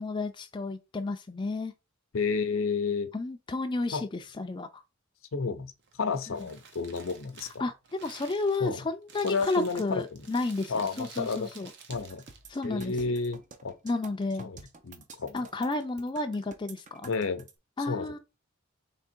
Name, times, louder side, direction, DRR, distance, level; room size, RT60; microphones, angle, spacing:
voice 1, 0.0-1.7 3.1-4.8 6.3-6.4 7.6-11.7 12.5-12.9 13.8-14.5 15.3-17.1 17.8-18.2, left 2 dB, 25° left, 0.4 m, -32 dB
voice 2, 2.1-3.1 3.9-4.0 5.3-5.7 6.0-7.5 8.6-8.8 9.2-10.2 10.7-11.5 11.9-12.2 12.6-13.7 14.4-15.4 17.1-17.4 17.9-18.1, left 4 dB, 75° left, 0.6 m, -31 dB
Crumpling crinkling, 5.8-12.6, right 5 dB, 60° right, 0.9 m, -51 dB
sound 1, 11.9-17.5, right 4 dB, 40° right, 0.6 m, -49 dB
3.6 x 3.4 x 4.4 m
head